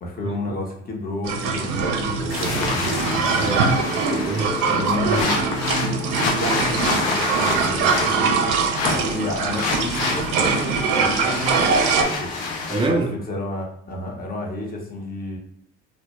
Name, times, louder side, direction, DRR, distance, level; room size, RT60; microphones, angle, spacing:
voice 1, 0.0-3.6 4.8-5.4 6.2-8.4 8.9-12.3 12.9-15.4, left 2 dB, 25° left, 0 dB, 0.7 m, -31 dB
sound 1, 1.2-12.1, right 5 dB, 65° right, 0.5 m, -23 dB
sound 2, 2.3-12.9, left 3 dB, 75° left, 0.6 m, -27 dB
voice 2, 3.4-5.2 12.7-13.1, right 2 dB, 15° right, 2 dB, 0.4 m, -26 dB
Bowed string instrument, 3.6-8.7, left 1 dB, 55° left, 1.0 m, -39 dB
2.1 x 2.1 x 2.8 m, 0.71 s
hypercardioid pair, 75°, 35 cm